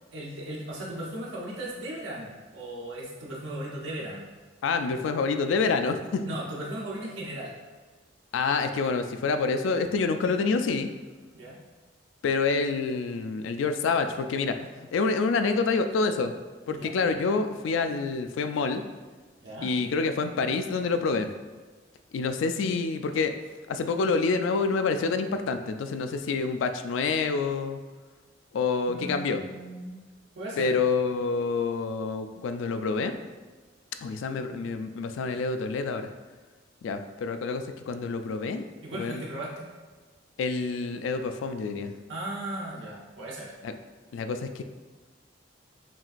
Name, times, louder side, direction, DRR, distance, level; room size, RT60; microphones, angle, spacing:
voice 1, 0.1-4.2 6.3-7.5 11.3-11.6 16.7-16.9 19.4-19.7 28.9-30.0 30.3-30.8 38.8-39.6 42.1-43.5, right 1 dB, 80° right, -5 dB, 0.7 m, -37 dB
voice 2, 4.6-6.2 8.3-10.9 12.2-16.3 16.7-18.8 19.6-21.3 22.1-23.3 23.7-27.8 28.5-29.4 30.6-33.1 34.0-36.1 36.8-38.7 38.9-39.2 40.4-41.9 43.6-43.7 44.1-44.6, left 4 dB, 85° left, 9 dB, 0.3 m, -27 dB
5.8 x 2.4 x 2.5 m, 1.3 s
head